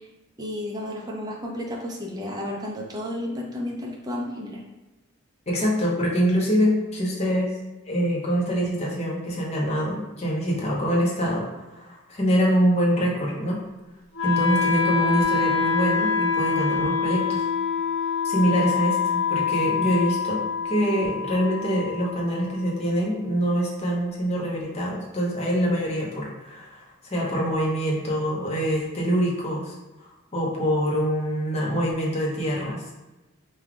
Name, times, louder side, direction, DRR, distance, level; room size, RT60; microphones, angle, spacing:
voice 1, 0.4-4.6, left 1 dB, 20° right, -1 dB, 0.5 m, -32 dB
voice 2, 5.5-7.5 7.9-13.6 14.2-17.5 18.2-29.7 30.3-32.9, equal, 30° left, -3 dB, 0.8 m, -25 dB
Wind instrument woodwind instrument, 14.1-24.2, left 6 dB, 70° left, 1.1 m, -26 dB
3.3 x 2.3 x 3.6 m, 1.1 s
head